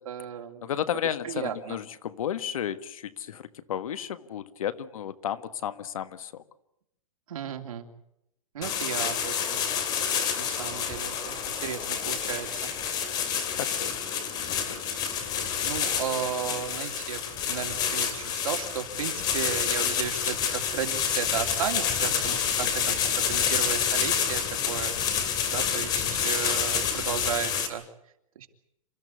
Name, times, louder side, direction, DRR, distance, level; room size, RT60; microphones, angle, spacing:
voice 1, 0.0-0.7 1.2-1.8 7.3-7.9 8.5-9.6 10.4-12.7 15.6-27.8 28.3-28.5, right 9 dB, 90° right, 4 dB, 3.0 m, -34 dB
voice 2, 0.6-6.4 13.6-14.0 14.7-14.9, left 10 dB, 80° left, 12 dB, 1.6 m, -33 dB
sound 1, 8.6-27.7, left 8 dB, 25° left, 2.7 m, -28 dB
28.0 x 14.5 x 9.8 m, 0.81 s
supercardioid pair, 170°, 17 cm